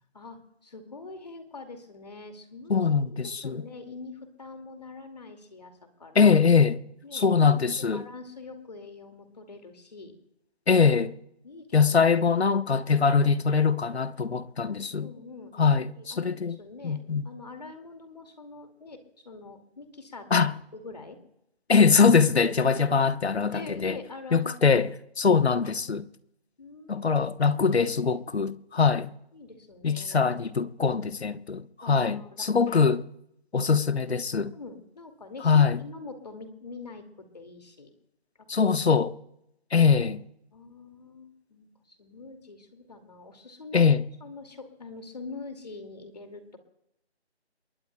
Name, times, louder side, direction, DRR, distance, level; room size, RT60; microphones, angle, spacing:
voice 1, 0.1-5.7 6.0-6.4 7.0-7.2 7.8-10.2 11.4-11.8 14.6-20.3 20.7-21.2 22.6-22.8 23.5-24.9 26.6-27.1 29.3-30.3 31.8-32.5 34.4-37.9 40.5-43.9 44.2-46.6, left 3 dB, 40° left, 2.2 m, -44 dB
voice 2, 2.7-3.7 6.1-6.8 7.1-8.0 10.7-11.1 11.7-15.1 15.6-16.6 16.8-17.2 20.3-20.5 21.7-24.0 24.3-24.9 25.2-26.1 26.9-29.1 29.8-33.0 33.5-34.5 35.4-35.8 38.5-39.1 39.7-40.2 43.7-44.0, left 5 dB, 70° left, 1.0 m, -22 dB
28.5 x 22.5 x 2.2 m
figure-of-eight pair, 175°, 33 cm